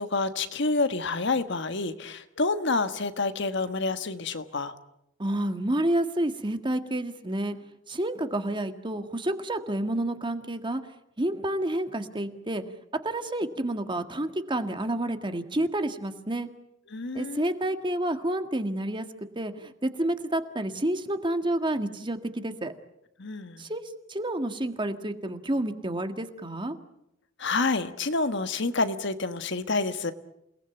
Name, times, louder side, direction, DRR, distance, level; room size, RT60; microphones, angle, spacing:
voice 1, 0.0-4.7 16.9-17.4 23.2-23.7 27.4-30.1, left 3 dB, 65° left, 10 dB, 1.5 m, -28 dB
voice 2, 5.2-7.6 7.9-10.8 11.2-12.6 13.0-16.5 17.1-19.1 19.4-22.7 23.6-23.8 24.1-26.8, right 1 dB, 25° right, 8 dB, 1.8 m, -29 dB
28.5 x 19.0 x 9.1 m, 0.82 s
head